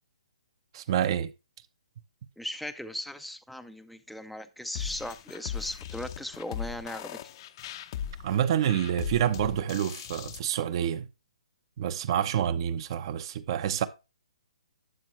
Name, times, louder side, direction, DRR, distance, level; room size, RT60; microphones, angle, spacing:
voice 1, 0.7-1.3 8.2-11.1 11.8-13.9, right 9 dB, 40° right, 0.9 m, -27 dB
voice 2, 2.4-7.3, left 1 dB, ahead, 0.6 m, -38 dB
sound 1, 4.7-10.4, left 9 dB, 40° left, 0.7 m, -38 dB
12.0 x 7.9 x 3.2 m
hypercardioid pair, 145°, 4 cm